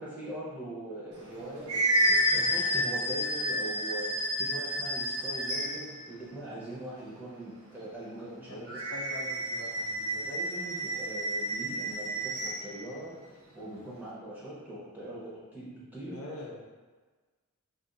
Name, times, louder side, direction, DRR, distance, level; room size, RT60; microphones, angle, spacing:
voice 1, 0.0-8.8 10.1-16.2, right 1 dB, 10° right, -9 dB, 0.7 m, -41 dB
sound 1, 1.2-6.0 8.7-12.7, equal, 80° right, 0.6 m, -30 dB
voice 2, 8.4-10.2 16.1-16.6, left 2 dB, 65° left, -3 dB, 0.6 m, -44 dB
2.4 x 2.4 x 3.8 m, 1.3 s
head